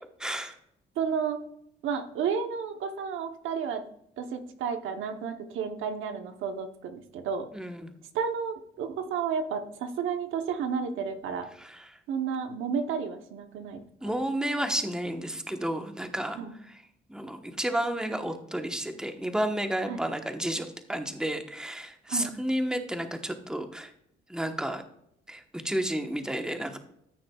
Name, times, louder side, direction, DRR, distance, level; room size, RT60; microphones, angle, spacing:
voice 1, 0.2-0.5 7.5-8.0 11.6-12.0 14.0-16.4 16.7-16.8 17.1-23.9 24.3-24.8 25.3-26.8, right 1 dB, 5° right, 6 dB, 1.1 m, -31 dB
voice 2, 1.0-1.4 1.8-3.8 4.2-7.5 8.1-11.5 12.1-14.1 16.3-16.5 19.9-20.0 22.1-22.3, right 6 dB, 85° right, 6 dB, 1.0 m, -32 dB
14.0 x 6.2 x 2.3 m, 0.73 s
cardioid pair, 90°, 20 cm